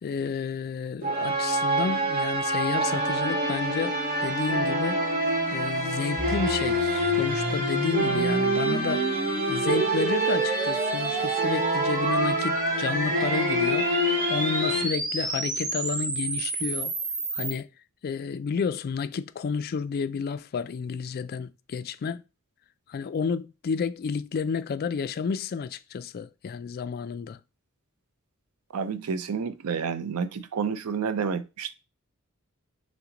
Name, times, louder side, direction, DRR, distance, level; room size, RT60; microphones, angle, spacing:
voice 1, 0.0-5.0 5.5-9.1 9.5-13.9 14.3-16.9 17.3-17.7 18.0-22.2 22.9-27.4, left 5 dB, 45° left, 0.3 m, -31 dB
sound 1, 1.0-14.8, right 1 dB, 40° right, 1.1 m, -26 dB
sound 2, 6.2-17.5, right 2 dB, 20° right, 0.6 m, -31 dB
voice 2, 28.7-31.7, right 6 dB, 80° right, 0.5 m, -30 dB
5.8 x 2.1 x 3.8 m
head